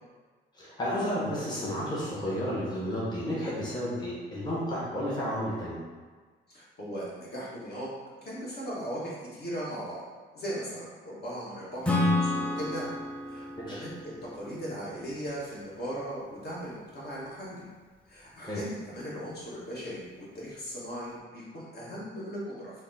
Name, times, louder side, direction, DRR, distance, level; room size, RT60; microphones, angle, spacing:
voice 1, 0.6-5.8 13.6-13.8 18.4-18.6, equal, 20° left, -7 dB, 1.1 m, -32 dB
voice 2, 6.5-7.9 8.2-10.0 10.3-11.9 12.2-12.9 13.3-17.6 18.1-22.7, equal, 55° left, -7 dB, 1.4 m, -38 dB
Acoustic guitar / Strum, 11.8-15.4, left 2 dB, 5° left, 0.6 m, -30 dB
3.9 x 2.2 x 4.0 m, 1.4 s
cardioid pair, 90°, 20 cm